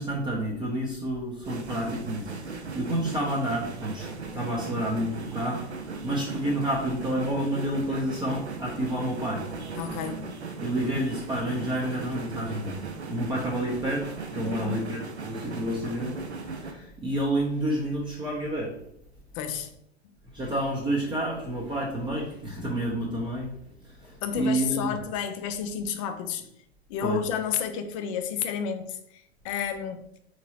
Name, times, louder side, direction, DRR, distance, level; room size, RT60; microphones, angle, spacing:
voice 1, 0.0-9.5 10.6-12.8 13.1-18.8 20.3-24.9 27.0-27.2, right 1 dB, 15° right, 0.6 m, -30 dB
sound 1, 1.4-16.7, right 4 dB, 90° right, 0.5 m, -38 dB
voice 2, 9.8-10.3 14.4-14.9 19.3-19.7 24.2-26.5 26.9-30.2, left 7 dB, 35° left, 0.4 m, -31 dB
3.7 x 2.9 x 2.8 m
figure-of-eight pair, 100°, 32 cm